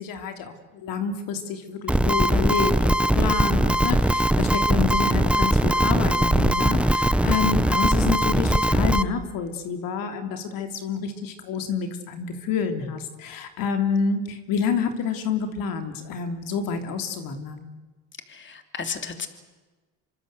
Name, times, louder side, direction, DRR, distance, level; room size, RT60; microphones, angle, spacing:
voice 1, 0.0-17.7, left 6 dB, 75° left, 6 dB, 3.2 m, -28 dB
sound 1, 1.9-9.0, right 1 dB, 5° right, 1.0 m, -20 dB
voice 2, 18.3-19.3, left 5 dB, 35° left, 7 dB, 3.3 m, -33 dB
26.5 x 24.0 x 8.0 m, 1.2 s
supercardioid pair, 90°, 35 cm